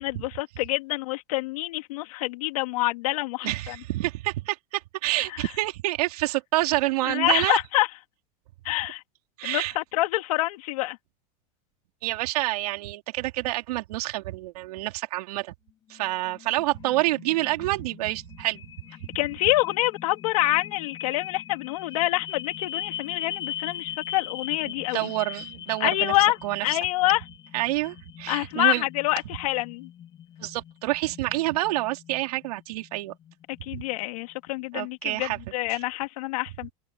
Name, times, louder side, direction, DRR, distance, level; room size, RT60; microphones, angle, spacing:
voice 1, 0.0-3.8 7.1-7.9 8.6-9.0 9.4-11.0 19.1-25.1 25.8-26.4 26.6-27.2 28.3-29.9 33.6-36.7, left 19 dB, 65° left, 3.0 m, -26 dB
voice 2, 3.4-7.6 9.4-9.7 12.0-15.5 15.9-18.6 24.7-26.2 26.4-26.8 27.5-28.9 30.4-33.1 33.7-33.8 34.7-35.4 35.7-35.8, right 18 dB, 75° right, 3.8 m, -28 dB
sound 1, 15.9-34.0, left 10 dB, 20° left, 7.1 m, -41 dB
open air
supercardioid pair, 180°, 20 cm